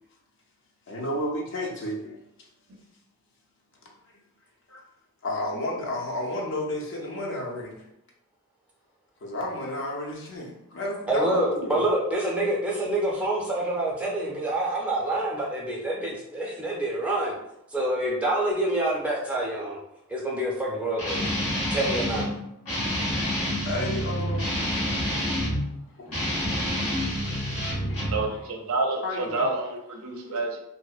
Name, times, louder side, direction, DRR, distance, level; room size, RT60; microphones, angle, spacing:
voice 1, 0.9-2.2 4.7-4.8 5.2-7.9 9.2-11.8 23.6-24.5 26.0-26.1 26.8-26.9 27.5-28.0 28.2-28.4 29.0-29.5 30.1-30.4, left 1 dB, 55° left, -2 dB, 0.5 m, -32 dB
voice 2, 11.1-17.4 17.7-19.8 20.1-21.2 21.7-22.3, right 1 dB, 5° right, -4 dB, 0.5 m, -27 dB
Guitar, 21.0-22.3 22.7-25.6 26.1-28.2, equal, 75° left, 1.4 m, -28 dB
voice 3, 28.1-30.6, right 3 dB, 65° right, 3 dB, 0.4 m, -28 dB
2.7 x 2.0 x 2.3 m, 0.80 s
head